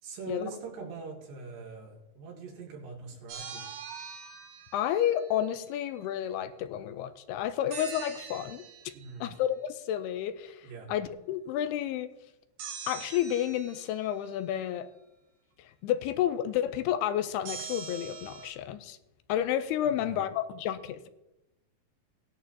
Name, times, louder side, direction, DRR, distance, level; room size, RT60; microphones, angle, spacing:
voice 1, 0.0-3.7 8.9-9.3 10.6-10.9 19.8-20.2, right 4 dB, 90° right, -1 dB, 4.6 m, -42 dB
sound 1, 3.3-5.4 7.7-9.2 12.6-14.3 17.5-18.5, right 7 dB, 70° right, 3.1 m, -43 dB
voice 2, 4.7-8.6 9.2-12.1 12.9-14.9 15.8-19.0 19.3-21.1, left 11 dB, 85° left, 11 dB, 2.6 m, -31 dB
18.0 x 11.0 x 2.9 m, 0.95 s
omnidirectional pair, 4.7 m